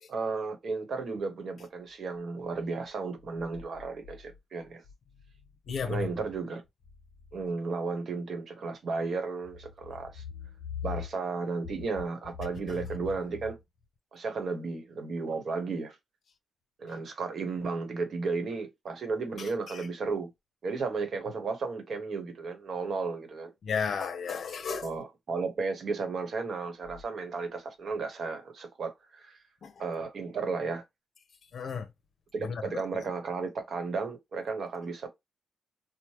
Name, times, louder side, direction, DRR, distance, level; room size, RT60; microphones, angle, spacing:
voice 1, 0.1-4.8 5.8-6.6 7.3-10.2 10.8-13.6 14.1-16.0 16.8-20.3 20.6-23.5 24.8-29.4 29.8-30.8 32.3-35.1, right 4 dB, 60° right, 1.0 m, -34 dB
voice 2, 5.7-6.1 19.4-19.9 23.6-24.9 29.6-29.8 31.5-31.9 32.4-32.6, left 6 dB, 60° left, 0.6 m, -33 dB
3.2 x 2.1 x 2.9 m
cardioid pair, 90°, 0 cm